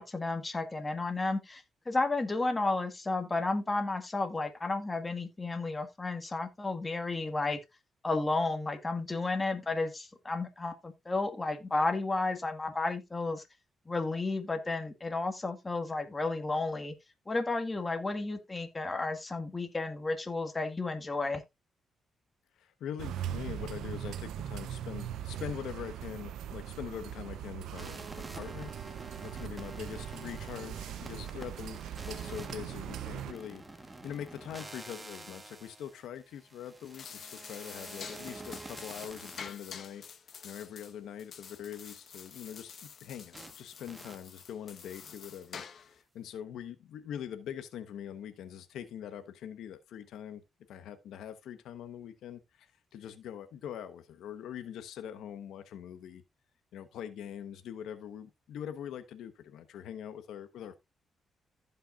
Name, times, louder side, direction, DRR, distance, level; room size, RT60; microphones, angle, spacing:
voice 1, 0.0-7.6 8.0-13.4 13.8-16.9 17.3-21.4, left 3 dB, 20° left, 1.7 m, -32 dB
voice 2, 22.6-28.7 29.2-33.6 34.0-40.0 40.4-50.4 50.7-56.2 56.7-60.8, left 9 dB, 90° left, 1.1 m, -43 dB
sound 1, 23.0-33.3, right 11 dB, 90° right, 0.6 m, -40 dB
sound 2, 27.8-39.5 43.3-43.5 43.9-44.2, right 2 dB, 20° right, 1.4 m, -47 dB
sound 3, 36.7-46.0, left 7 dB, 60° left, 1.2 m, -48 dB
15.5 x 5.6 x 2.5 m
cardioid pair, 100°, 0 cm